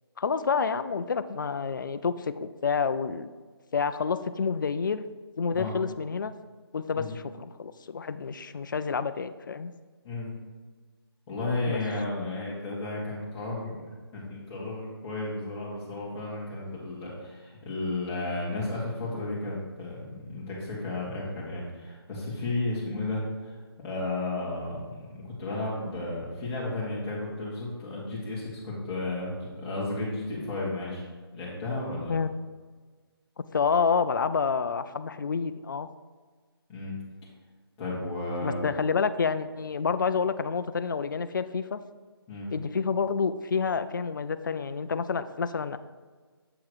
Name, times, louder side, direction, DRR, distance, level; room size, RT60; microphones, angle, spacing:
voice 1, 0.2-3.3 3.7-5.0 5.4-6.3 6.7-9.7 11.7-11.8 32.1-32.3 33.5-35.9 38.4-41.8 42.5-45.8, left 5 dB, 50° left, 11 dB, 0.4 m, -28 dB
voice 2, 11.3-31.0 31.3-32.1 36.7-36.9 37.8-38.7 42.3-42.5, left 2 dB, 10° left, -7 dB, 1.4 m, -33 dB
7.7 x 3.7 x 4.7 m, 1.4 s
figure-of-eight pair, 165°, 13 cm